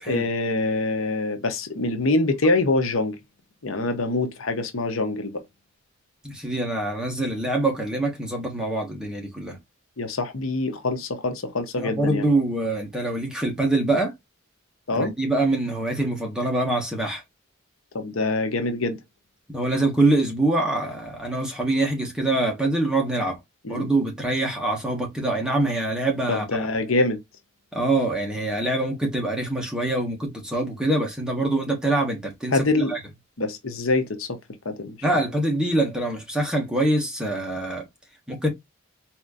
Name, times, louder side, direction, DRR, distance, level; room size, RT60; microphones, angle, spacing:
voice 1, 0.1-3.2 3.6-5.4 10.0-12.3 14.9-15.1 17.9-19.0 23.6-23.9 26.3-27.2 32.5-32.9 33.4-34.4 34.6-35.0, left 2 dB, 85° left, 0.9 m, -25 dB
voice 2, 6.2-9.6 11.8-14.1 14.9-17.2 19.5-23.4 23.7-26.4 27.7-32.6 32.9-33.0 35.0-37.8 38.3-38.5, right 2 dB, 5° right, 1.4 m, -24 dB
4.2 x 3.0 x 2.5 m
head